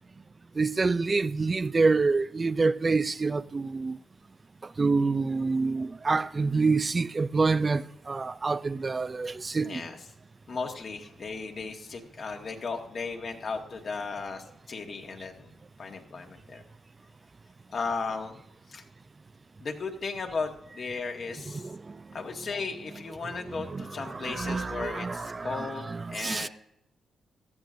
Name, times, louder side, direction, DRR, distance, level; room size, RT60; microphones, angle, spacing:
voice 1, 0.6-4.0 4.8-9.8 20.8-20.9 21.5-21.9 22.9-23.0 23.4-26.5, right 4 dB, 35° right, 0.4 m, -27 dB
voice 2, 9.6-10.0 10.5-15.5 15.8-16.6 17.7-18.4 18.7-18.8 19.6-21.7 22.1-26.5, left 4 dB, 55° left, 1.8 m, -36 dB
18.0 x 13.0 x 2.6 m
supercardioid pair, 55°, 0 cm